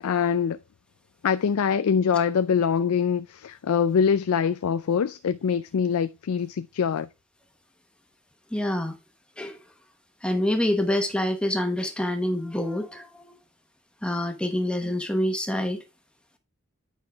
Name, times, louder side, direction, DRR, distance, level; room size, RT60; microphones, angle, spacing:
voice 1, 0.0-0.6 1.2-7.1, left 7 dB, 85° left, 0.4 m, -24 dB
voice 2, 8.5-9.0 9.4-9.6 10.2-13.4 14.0-15.8, left 1 dB, 5° left, 1.1 m, -26 dB
9.0 x 5.6 x 3.4 m
head